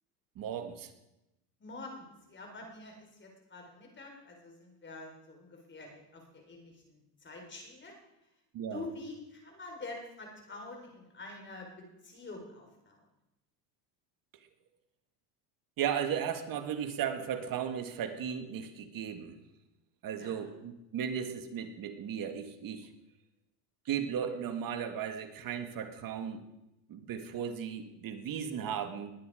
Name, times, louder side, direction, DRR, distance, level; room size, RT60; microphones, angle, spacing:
voice 1, 0.4-0.9 8.5-8.8 15.8-19.3 20.0-22.9 23.9-26.4 26.9-29.1, right 8 dB, 45° right, 8 dB, 1.8 m, -36 dB
voice 2, 1.6-7.9 8.7-13.0 20.2-20.5, left 2 dB, 25° left, 2 dB, 4.6 m, -47 dB
20.0 x 9.7 x 5.0 m, 0.92 s
supercardioid pair, 100°, 46 cm